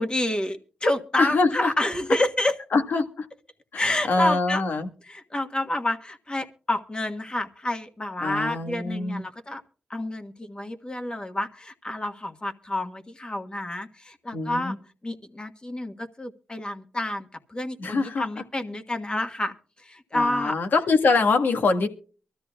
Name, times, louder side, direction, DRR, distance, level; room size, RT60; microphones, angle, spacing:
voice 1, 0.0-2.6 3.7-4.6 5.0-9.6 9.9-14.7 15.0-20.6, left 1 dB, 25° left, 5 dB, 1.4 m, -29 dB
voice 2, 1.2-1.7 2.7-3.3 3.7-4.9 8.2-9.2 14.3-14.7 17.8-18.2 20.1-21.9, left 3 dB, 70° left, 5 dB, 1.6 m, -24 dB
24.0 x 13.0 x 2.4 m, 0.38 s
cardioid pair, 55°, 3 cm